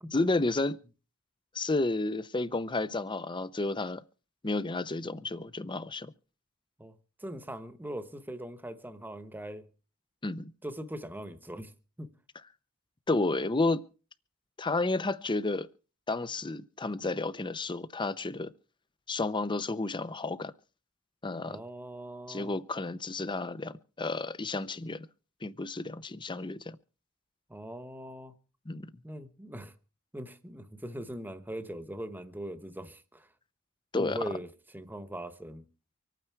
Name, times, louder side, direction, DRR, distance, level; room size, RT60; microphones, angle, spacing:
voice 1, 0.1-0.8 1.5-4.0 4.4-6.1 10.2-10.5 13.1-13.8 14.6-15.7 16.1-18.5 19.1-20.5 21.2-21.6 22.3-25.1 25.4-26.8 28.7-28.9 33.9-34.3, left 2 dB, 20° left, 0.7 m, -31 dB
voice 2, 6.8-9.7 10.6-11.7 12.0-12.1 21.5-22.6 27.5-28.3 29.0-29.7 30.1-33.3 33.9-35.7, right 1 dB, 10° right, 1.1 m, -41 dB
25.5 x 9.2 x 4.6 m
head